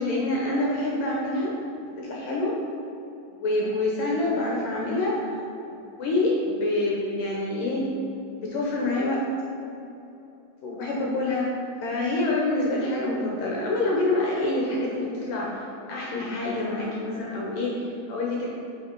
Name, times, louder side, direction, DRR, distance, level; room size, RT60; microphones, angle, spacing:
voice 1, 0.0-1.5 2.0-2.6 3.4-5.4 5.7-7.8 8.4-9.2 10.6-11.5 11.8-15.5 15.9-18.5, left 2 dB, 75° left, -3 dB, 2.0 m, -26 dB
6.9 x 5.0 x 4.4 m, 2.9 s
omnidirectional pair, 4.8 m